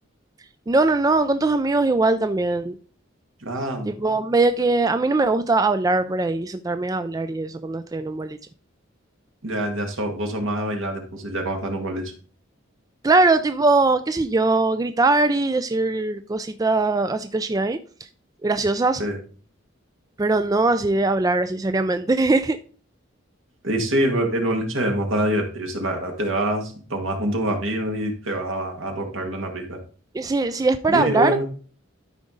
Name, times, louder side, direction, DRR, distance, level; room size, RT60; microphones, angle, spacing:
voice 1, 0.7-2.7 3.9-8.4 13.0-17.8 18.4-19.0 20.2-22.6 30.1-31.5, right 3 dB, 15° right, 0.3 m, -21 dB
voice 2, 3.4-3.9 9.4-12.0 19.0-19.2 23.6-29.8 30.9-31.5, right 1 dB, 75° right, 2.0 m, -25 dB
12.5 x 5.1 x 3.8 m
head